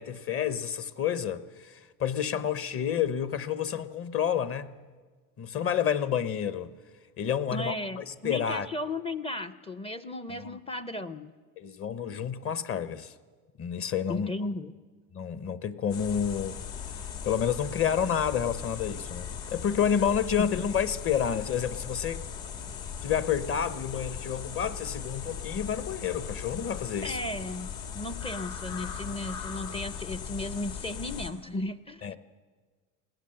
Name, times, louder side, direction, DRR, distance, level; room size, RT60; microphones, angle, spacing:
voice 1, 0.0-4.7 5.4-6.7 7.2-8.7 10.3-10.6 11.6-13.1 13.6-14.3 15.1-16.6 17.2-22.2 23.0-27.2 32.0-32.2, left 8 dB, 35° left, 0.9 m, -29 dB
voice 2, 7.5-11.3 14.1-14.7 27.0-27.7 27.9-32.2, left 2 dB, 15° left, 0.6 m, -35 dB
sound 1, 15.9-31.3, left 7 dB, 80° left, 2.8 m, -38 dB
21.0 x 17.5 x 7.7 m
supercardioid pair, 125°, 40 cm